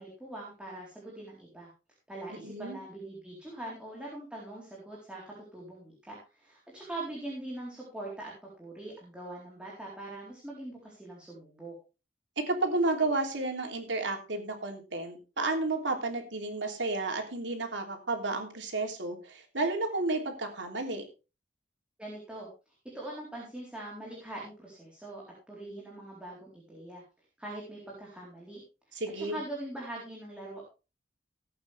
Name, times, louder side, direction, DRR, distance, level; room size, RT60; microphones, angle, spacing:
voice 1, 0.0-1.7 2.1-8.3 8.6-11.7 22.0-27.0 27.4-30.6, right 1 dB, 5° right, -4 dB, 4.1 m, -42 dB
voice 2, 2.4-2.8 12.5-21.0 28.9-29.4, right 2 dB, 90° right, 3 dB, 3.3 m, -32 dB
17.5 x 8.8 x 3.5 m, 0.31 s
head